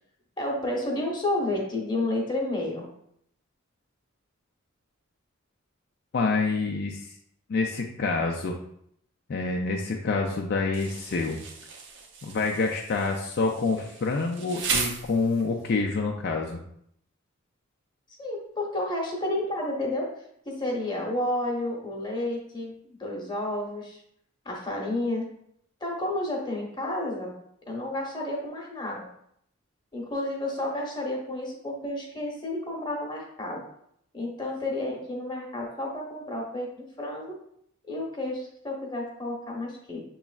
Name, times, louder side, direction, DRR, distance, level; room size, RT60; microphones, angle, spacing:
voice 1, 0.4-2.9 18.2-20.1 20.5-22.7 23.0-24.0 24.4-25.3 25.8-27.3 27.7-29.1 29.9-33.6 34.1-36.7 37.0-37.4 37.9-40.0, left 1 dB, 20° left, -1 dB, 1.0 m, -31 dB
voice 2, 6.1-7.1 7.5-8.6 9.3-11.4 12.2-16.6, left 3 dB, 50° left, 0 dB, 0.4 m, -27 dB
Insect, 10.7-15.7, right 5 dB, 60° right, 0.6 m, -35 dB
7.0 x 3.1 x 2.4 m, 0.71 s
head